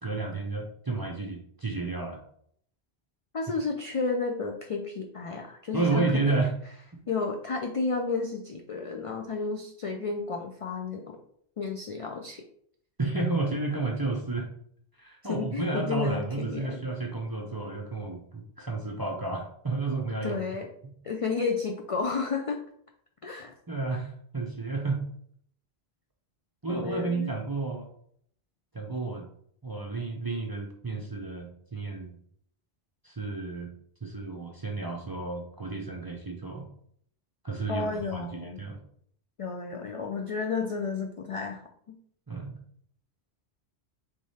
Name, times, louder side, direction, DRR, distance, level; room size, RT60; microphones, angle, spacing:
voice 1, 0.0-2.2 5.7-6.6 13.0-14.5 15.0-20.4 23.7-25.0 26.6-27.9 28.7-29.3 29.6-32.2 33.0-33.7 34.0-36.7 37.4-38.8 42.3-42.6, right 3 dB, 30° right, 1 dB, 0.5 m, -31 dB
voice 2, 3.3-6.3 7.1-11.2 11.6-12.4 15.3-16.8 20.2-20.7 21.0-22.6 23.2-23.5 26.7-27.4 37.7-38.6 39.4-42.0, left 4 dB, 65° left, 2 dB, 0.3 m, -32 dB
3.4 x 3.3 x 4.1 m, 0.65 s
omnidirectional pair, 1.1 m